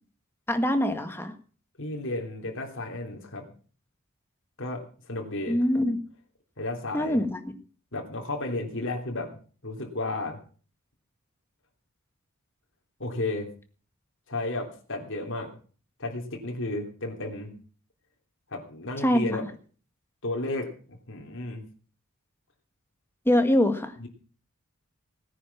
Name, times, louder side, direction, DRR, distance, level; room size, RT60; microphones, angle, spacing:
voice 1, 0.5-1.3 5.5-6.0 6.9-7.4 19.0-19.4 23.2-23.9, left 1 dB, 10° left, 7 dB, 1.6 m, -23 dB
voice 2, 1.8-3.5 4.6-5.6 6.6-7.2 7.9-9.4 9.6-10.4 13.0-13.5 14.3-15.5 16.0-17.5 18.5-19.4 20.2-21.6 24.0-24.1, left 2 dB, 60° left, 2 dB, 3.2 m, -33 dB
17.5 x 9.9 x 5.9 m, 0.41 s
head